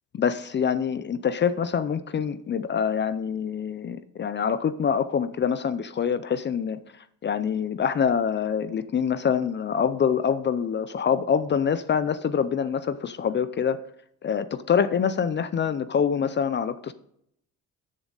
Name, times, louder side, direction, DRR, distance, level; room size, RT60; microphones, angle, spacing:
voice 1, 0.1-6.8 7.2-13.8 14.2-16.9, left 7 dB, 35° left, 0.6 m, -25 dB
13.5 x 7.4 x 3.9 m
cardioid pair, 105°, 32 cm